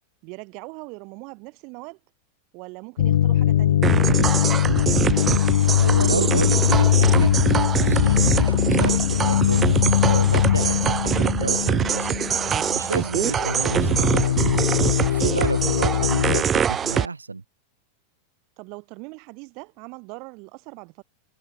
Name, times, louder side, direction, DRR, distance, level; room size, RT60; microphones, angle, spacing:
voice 1, 0.2-2.0 2.5-4.4 18.6-21.0, right 31 dB, 45° right, 2.3 m, -41 dB
sound 1, 3.0-12.9 13.2-16.4, left 11 dB, 60° left, 0.3 m, -21 dB
sound 2, 3.8-17.1, right 8 dB, 25° right, 0.4 m, -24 dB
voice 2, 5.8-12.2 12.7-14.6 15.0-17.4, right 3 dB, 80° right, 0.8 m, -30 dB
figure-of-eight pair, 90°, 0 cm